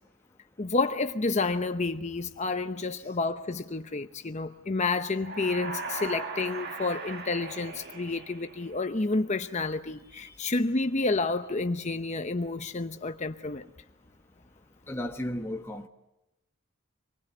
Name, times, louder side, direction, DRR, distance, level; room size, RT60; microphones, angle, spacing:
voice 1, 0.6-13.7, left 3 dB, 35° left, 0.8 m, -30 dB
sound 1, 5.1-9.0, right 3 dB, 50° right, 2.0 m, -39 dB
voice 2, 14.9-15.9, left 1 dB, 10° left, 1.2 m, -34 dB
26.0 x 20.0 x 8.1 m
head